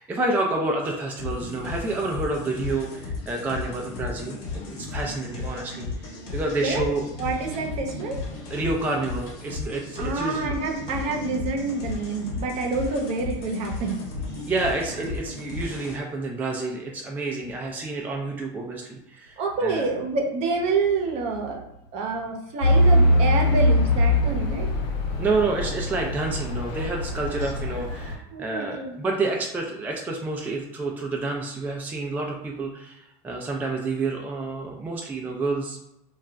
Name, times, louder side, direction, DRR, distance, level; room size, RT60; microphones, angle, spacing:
voice 1, 0.0-7.1 8.5-10.6 14.5-19.9 25.2-35.8, right 3 dB, 10° right, 0 dB, 0.4 m, -29 dB
sound 1, 1.2-16.0, left 3 dB, 55° left, 1.0 m, -35 dB
voice 2, 7.2-8.2 10.0-14.0 14.2-14.5 19.4-21.6 21.9-24.7 28.3-29.0, right 3 dB, 50° right, 2 dB, 0.7 m, -27 dB
Truck / Idling, 22.6-28.1, left 1 dB, 80° left, 0.9 m, -22 dB
2.3 x 2.2 x 3.9 m, 0.86 s
supercardioid pair, 130°, 14 cm